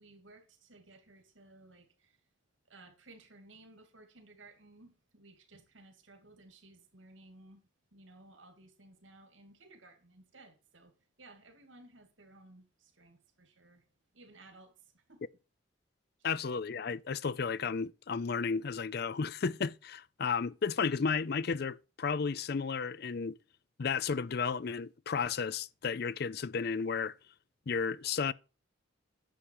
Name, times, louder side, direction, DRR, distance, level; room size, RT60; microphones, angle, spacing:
voice 1, 0.0-2.2 2.7-7.6 7.9-13.8 14.1-15.2, right 2 dB, 80° right, 2.6 m, -58 dB
voice 2, 16.2-23.4 23.8-27.1 27.7-28.3, left 5 dB, 55° left, 0.5 m, -33 dB
10.5 x 7.2 x 4.7 m
head